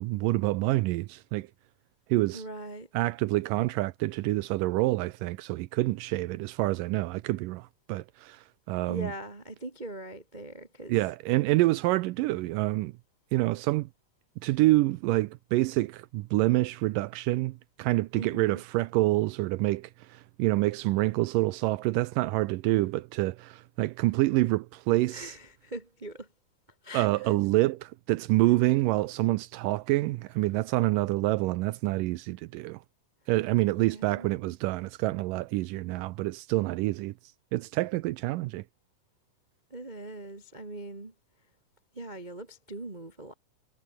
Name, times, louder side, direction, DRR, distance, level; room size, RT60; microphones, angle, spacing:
voice 1, 0.0-1.5 2.1-2.4 2.9-8.4 8.7-9.1 10.9-12.9 13.3-13.9 14.4-25.4 26.9-32.8 33.3-37.1 37.5-38.6, right 19 dB, 85° right, 2.2 m, -27 dB
voice 2, 2.3-2.9 8.9-10.9 18.1-18.6 25.1-26.3 26.8-27.3 33.7-34.3 39.7-41.1 41.9-43.3, right 1 dB, 25° right, 1.0 m, -41 dB
omnidirectional pair, 3.9 m